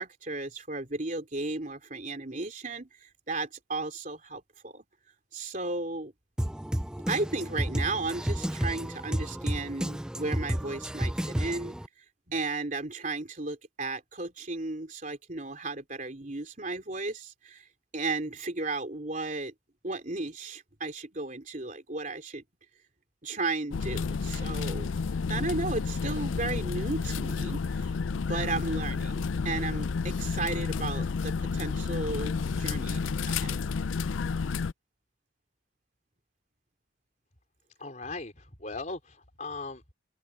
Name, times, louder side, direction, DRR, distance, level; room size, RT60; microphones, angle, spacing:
voice 1, 0.0-4.8 5.3-6.1 7.1-11.8 12.3-17.7 17.9-19.5 19.8-22.4 23.2-24.9 25.3-33.0 33.3-33.6, right 3 dB, 40° right, 3.5 m, -34 dB
Drum kit, 6.4-11.9, equal, 5° right, 0.3 m, -32 dB
sound 1, 23.7-34.7, left 5 dB, 85° left, 0.5 m, -31 dB
voice 2, 37.8-39.9, left 3 dB, 40° left, 4.0 m, -39 dB
head